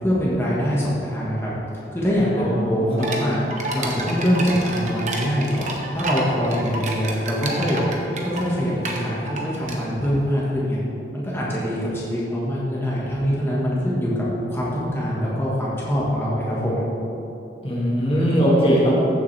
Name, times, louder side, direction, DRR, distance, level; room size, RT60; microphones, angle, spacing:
voice 1, 0.0-1.5 1.9-3.4 3.7-7.8 8.2-10.8 11.1-14.1 14.5-16.8, equal, 15° left, -7 dB, 1.5 m, -23 dB
voice 2, 2.4-3.5 17.6-19.0, equal, 30° left, -5 dB, 1.5 m, -21 dB
sound 1, 3.0-10.1, right 2 dB, 40° right, 1.0 m, -30 dB
15.0 x 7.0 x 3.4 m, 2.9 s
head